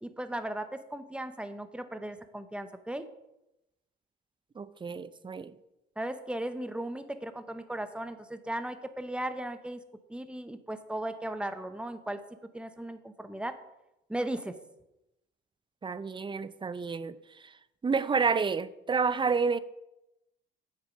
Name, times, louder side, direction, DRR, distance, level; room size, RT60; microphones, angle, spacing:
voice 1, 0.0-3.0 6.0-9.8 10.1-12.2 12.5-13.6 14.1-14.5, right 1 dB, 5° right, 0.8 m, -36 dB
voice 2, 4.6-5.5 15.8-17.2 17.8-19.6, right 5 dB, 25° right, 0.5 m, -29 dB
7.9 x 6.8 x 5.3 m
cardioid pair, 90°, 20 cm